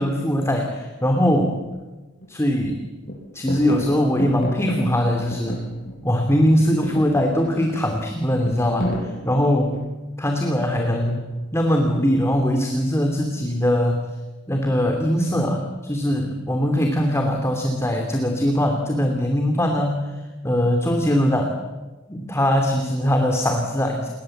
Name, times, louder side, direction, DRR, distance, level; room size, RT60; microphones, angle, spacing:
voice 1, 0.0-1.6 2.3-2.8 3.3-5.6 6.0-9.8 10.2-11.3 11.5-14.1 14.5-20.1 20.4-21.5 22.1-24.1, equal, 15° left, 3 dB, 2.7 m, -21 dB
sound 1, 1.6-1.7 2.2-2.8 3.0-6.2 6.5-10.1 11.1-11.6, equal, 40° left, 6.5 m, -33 dB
29.5 x 21.0 x 7.9 m, 1.2 s
head